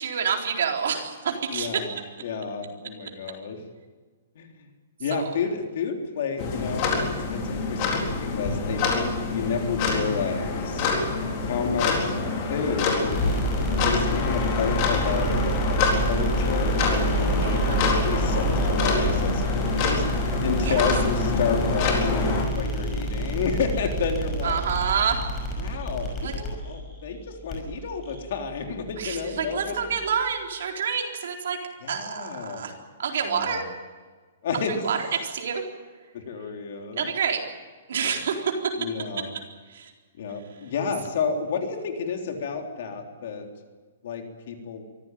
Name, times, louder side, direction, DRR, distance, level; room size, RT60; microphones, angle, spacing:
voice 1, 0.0-1.7 5.1-5.2 17.4-17.8 20.6-20.8 24.4-25.2 26.2-26.3 29.0-31.6 31.9-32.7 33.0-33.6 34.7-35.1 35.3-35.6 37.0-37.4 37.9-38.4 39.7-39.9, right 7 dB, 65° right, 2 dB, 4.1 m, -28 dB
voice 2, 1.5-3.6 4.4-4.6 5.0-10.9 11.4-12.1 12.5-13.2 13.9-20.0 20.4-24.6 25.6-29.8 31.8-32.7 33.2-33.7 34.4-34.9 36.1-37.1 37.9-38.0 38.8-39.3 40.2-43.5 44.0-44.8, left 5 dB, 50° left, 3 dB, 3.5 m, -30 dB
sound 1, 6.4-22.4, left 4 dB, 30° left, 4.1 m, -26 dB
sound 2, 13.1-30.1, right 1 dB, 15° left, 5.6 m, -29 dB
24.0 x 15.5 x 9.3 m, 1.4 s
hypercardioid pair, 175°, 0 cm